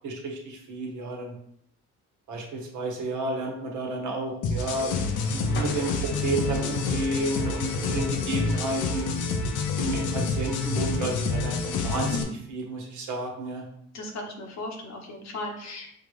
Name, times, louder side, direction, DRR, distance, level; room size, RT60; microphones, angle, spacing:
voice 1, 0.0-1.3 2.3-4.9 5.3-5.9 6.2-9.1 9.7-13.6, right 2 dB, 75° right, 0 dB, 1.2 m, -31 dB
sound 1, 4.4-12.2, left 4 dB, 80° left, 0.6 m, -28 dB
sound 2, 4.6-8.9, left 3 dB, 40° left, 0.7 m, -43 dB
voice 2, 13.9-16.0, left 1 dB, 65° left, 1 dB, 1.1 m, -36 dB
5.7 x 2.4 x 3.2 m, 0.70 s
cardioid pair, 90°, 30 cm